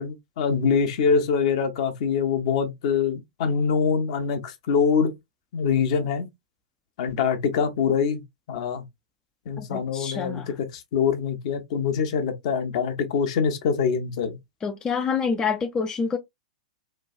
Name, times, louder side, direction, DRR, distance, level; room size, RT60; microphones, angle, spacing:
voice 1, 0.0-5.1 5.5-6.3 7.0-8.2 8.5-8.8 9.5-14.4, left 6 dB, 55° left, 0.7 m, -24 dB
voice 2, 9.6-10.5 14.6-16.2, left 5 dB, 20° left, 0.3 m, -27 dB
3.1 x 2.2 x 2.5 m
hypercardioid pair, 105°, 4 cm